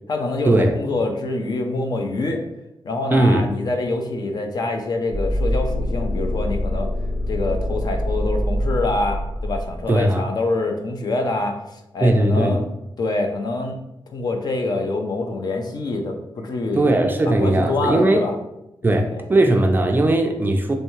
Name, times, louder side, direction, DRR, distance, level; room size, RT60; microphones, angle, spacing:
voice 1, 0.1-2.4 2.8-6.9 7.3-12.6 13.0-13.8 14.1-16.9 17.3-18.3 18.8-19.2, left 2 dB, 50° left, 4 dB, 0.5 m, -25 dB
voice 2, 3.1-3.5 9.9-10.3 12.0-12.6 16.7-18.3 18.8-20.7, right 1 dB, 25° right, 4 dB, 0.3 m, -18 dB
sound 1, 5.1-10.0, left 1 dB, 85° left, 1.3 m, -24 dB
3.3 x 3.1 x 3.1 m, 0.88 s
wide cardioid pair, 175°, 9 cm